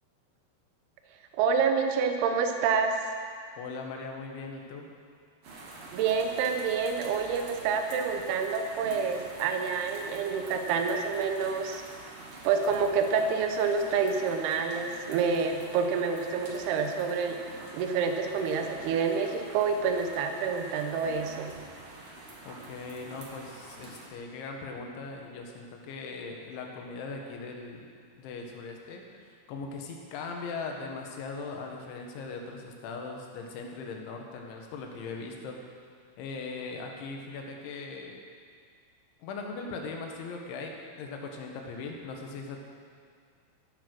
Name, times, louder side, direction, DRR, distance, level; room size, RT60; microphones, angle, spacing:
voice 1, 1.3-2.9 5.9-11.8 12.4-17.4 17.7-21.5, right 5 dB, 75° right, 5 dB, 2.4 m, -28 dB
voice 2, 3.6-4.9 22.5-27.9 28.2-35.6 36.2-38.2 39.2-42.6, left 4 dB, 70° left, 1 dB, 3.7 m, -39 dB
sound 1, 5.4-24.1, right 2 dB, 55° right, 1.9 m, -46 dB
15.0 x 11.5 x 6.2 m, 2.1 s
omnidirectional pair, 5.9 m